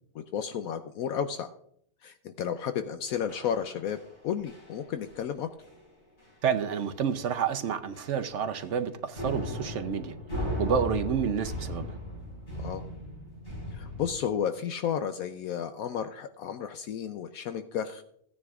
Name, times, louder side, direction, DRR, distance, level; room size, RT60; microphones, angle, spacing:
voice 1, 0.1-1.5 2.0-4.0 4.2-5.5 12.5-12.8 13.7-18.0, left 8 dB, 75° left, 1.0 m, -32 dB
sound 1, 3.3-4.2 4.5-4.8 5.0-5.3 5.6-5.8 6.2-6.3 6.8-7.1 7.4-7.5 7.9-8.8 9.1-14.1, left 1 dB, 35° left, 3.4 m, -37 dB
voice 2, 6.4-10.1 10.4-12.0, right 7 dB, 60° right, 0.9 m, -29 dB
16.0 x 9.8 x 2.4 m
omnidirectional pair, 1.6 m